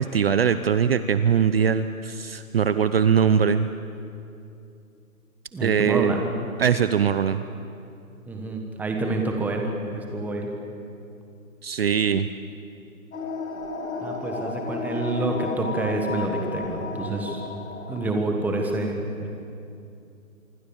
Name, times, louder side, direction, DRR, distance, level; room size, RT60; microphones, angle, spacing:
voice 1, 0.0-3.7 5.6-6.1 6.6-7.4 11.6-12.3, right 7 dB, 45° right, 12 dB, 0.8 m, -21 dB
voice 2, 5.5-6.2 8.3-9.7 9.9-10.5 14.0-17.4 17.9-19.3, right 2 dB, 5° right, 2 dB, 1.4 m, -27 dB
sound 1, 13.1-18.3, left 4 dB, 75° left, 4.2 m, -33 dB
26.0 x 23.0 x 7.2 m, 2.6 s
hypercardioid pair, 155°, 42 cm